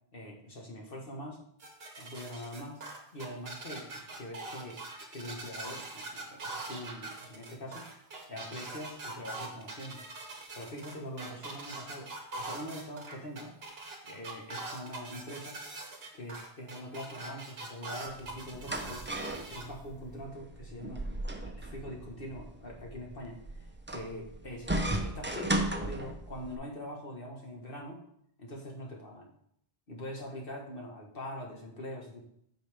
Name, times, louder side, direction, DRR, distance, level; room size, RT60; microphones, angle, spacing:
voice 1, 0.1-1.5 2.0-4.8 5.1-7.9 8.3-10.0 10.5-12.1 12.4-13.5 14.1-15.6 16.1-19.2 19.5-21.1 21.4-24.7 25.0-28.0 28.4-29.3 29.9-32.2, equal, 60° left, 0 dB, 1.8 m, -43 dB
sound 1, 1.6-19.6, right 2 dB, 70° right, 1.5 m, -42 dB
sound 2, 18.1-26.5, right 1 dB, 15° right, 0.5 m, -36 dB
8.4 x 5.7 x 3.5 m, 0.71 s
omnidirectional pair, 1.1 m